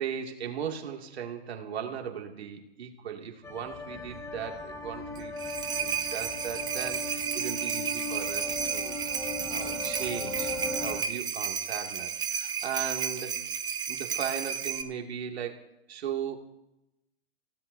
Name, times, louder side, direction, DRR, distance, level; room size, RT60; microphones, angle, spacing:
voice 1, 0.0-5.3 5.8-9.0 9.2-13.4 13.9-16.4, right 8 dB, 70° right, 2 dB, 2.4 m, -37 dB
sound 1, 3.4-11.0, left 3 dB, 10° left, 1.3 m, -38 dB
sound 2, 5.1-14.8, right 8 dB, 15° right, 0.7 m, -32 dB
28.5 x 17.0 x 2.7 m, 0.91 s
hypercardioid pair, 135°, 33 cm